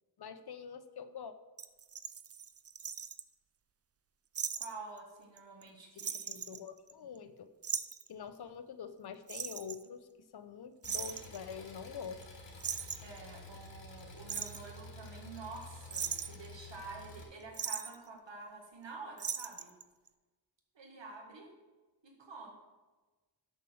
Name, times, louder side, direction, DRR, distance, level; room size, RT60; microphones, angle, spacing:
voice 1, 0.2-1.3 6.0-7.5 8.1-10.1 10.3-12.2, left 6 dB, 60° left, 11 dB, 0.7 m, -46 dB
sound 1, 1.6-3.2 4.3-4.7 5.0-5.1 5.4-5.7 6.0-7.2 7.6-8.1 9.3-9.8 10.8-11.4 12.2-12.3 12.6-13.2 14.0-14.6 15.4-15.6 15.9-16.5 17.5-17.9 19.2-19.8 20.1-20.2, right 7 dB, 35° right, 0.4 m, -39 dB
voice 2, 4.5-6.6 13.0-19.7 20.8-21.5 22.0-22.5, right 3 dB, 85° right, 1 dB, 1.8 m, -48 dB
Engine, 10.8-17.2, left 2 dB, 80° left, 1.8 m, -51 dB
6.6 x 6.1 x 6.3 m, 1.2 s
wide cardioid pair, 80°, 43 cm